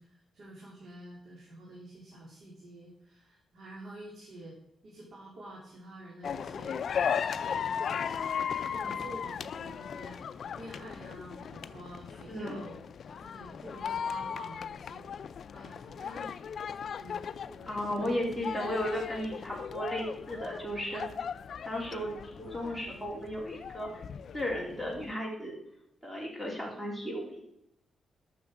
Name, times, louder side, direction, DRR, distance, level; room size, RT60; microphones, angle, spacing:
voice 1, 0.0-4.6 4.8-6.8 7.2-10.2 10.5-12.7 13.1-15.1 15.5-16.3 17.0-17.8, right 1 dB, 60° right, -4 dB, 3.0 m, -48 dB
sound 1, 6.2-25.1, left 7 dB, 60° left, 0.4 m, -37 dB
voice 2, 12.3-12.6 17.7-21.0 21.6-23.9 24.3-25.6 26.0-27.4, equal, 5° right, -1 dB, 3.4 m, -35 dB
12.0 x 6.7 x 4.9 m, 0.77 s
wide cardioid pair, 130°, 0 cm